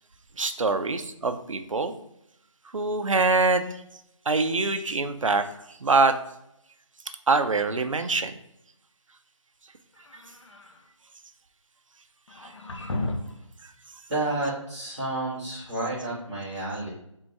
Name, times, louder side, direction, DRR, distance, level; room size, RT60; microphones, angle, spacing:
voice 1, 0.4-1.9 2.7-3.8 4.3-6.1 7.3-8.3 12.4-12.5, right 3 dB, 70° right, 9 dB, 0.6 m, -24 dB
sound 1, 9.9-10.8 12.3-13.5, left 2 dB, 60° left, 0.7 m, -34 dB
voice 2, 14.1-16.9, right 2 dB, ahead, -22 dB, 0.4 m, -30 dB
3.7 x 2.7 x 4.5 m, 0.79 s
figure-of-eight pair, 165°, 17 cm